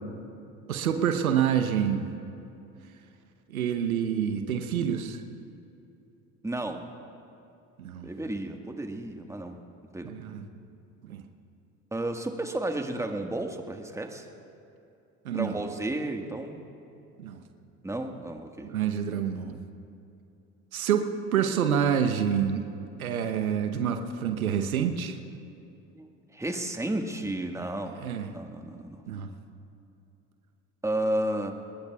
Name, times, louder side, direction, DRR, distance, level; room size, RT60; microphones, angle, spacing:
voice 1, 0.7-2.1 3.5-5.2 7.8-8.1 10.0-10.4 11.0-11.2 15.2-15.6 17.2-17.4 18.6-19.5 20.7-22.7 23.0-25.2 28.0-28.3 29.1-29.3, right 8 dB, 85° right, 7 dB, 1.0 m, -27 dB
voice 2, 6.4-6.8 8.0-9.6 9.9-10.1 11.9-14.3 15.3-16.6 17.8-18.7 25.9-28.0 28.3-29.0 30.8-31.5, right 1 dB, 5° right, 4 dB, 1.6 m, -32 dB
26.0 x 21.0 x 2.4 m, 2.7 s
hypercardioid pair, 65°, 41 cm